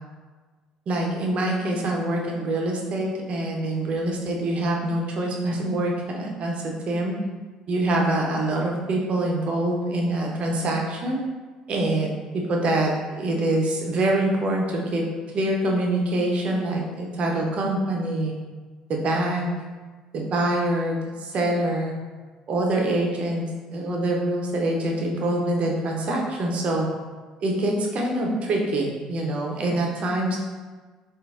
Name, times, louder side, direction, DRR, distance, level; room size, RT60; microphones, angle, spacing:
voice 1, 0.9-7.2 7.7-11.2 11.7-15.1 15.3-18.3 18.9-19.5 20.1-21.9 22.5-23.4 23.7-26.9 27.4-30.4, right 1 dB, 45° right, 0 dB, 0.7 m, -25 dB
3.9 x 2.0 x 3.6 m, 1.4 s
figure-of-eight pair, 55°, 3 cm